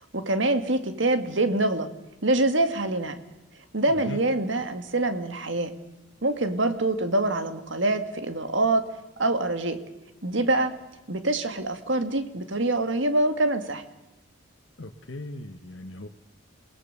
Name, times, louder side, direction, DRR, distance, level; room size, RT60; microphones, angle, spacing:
voice 1, 0.1-1.9 2.2-3.1 3.7-5.7 6.2-8.9 9.2-9.8 10.2-10.8 11.1-13.8, right 2 dB, 65° right, 9 dB, 2.1 m, -25 dB
voice 2, 3.8-4.2 14.8-16.1, left 2 dB, 65° left, 3 dB, 1.3 m, -38 dB
27.5 x 19.0 x 6.8 m, 0.99 s
head